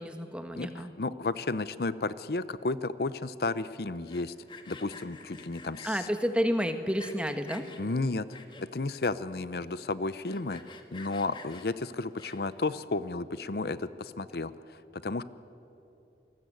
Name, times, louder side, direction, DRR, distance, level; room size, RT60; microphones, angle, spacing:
voice 1, 0.0-0.9 5.8-7.7, equal, 5° right, 7 dB, 1.4 m, -30 dB
voice 2, 0.6-4.3 4.7-6.0 7.8-10.6 10.9-15.2, left 3 dB, 60° left, 15 dB, 0.7 m, -33 dB
Sawing, 4.0-6.1 6.6-7.8 8.3-8.9 9.3-9.4 9.6-9.7 10.1-12.6, left 4 dB, 25° left, 1.7 m, -49 dB
27.5 x 19.5 x 9.3 m, 3.0 s
head